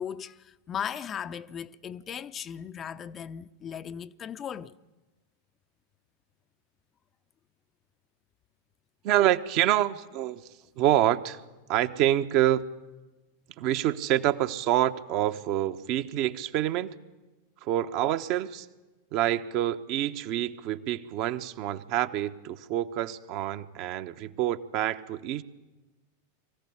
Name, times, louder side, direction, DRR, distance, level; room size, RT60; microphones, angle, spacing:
voice 1, 0.0-4.7, left 8 dB, 25° left, 0.6 m, -37 dB
voice 2, 9.0-10.4 10.8-11.4 11.7-12.7 13.6-16.9 17.6-18.7 19.1-25.4, right 13 dB, 40° right, 1.0 m, -27 dB
23.5 x 15.5 x 10.0 m
figure-of-eight pair, 90°, 0 cm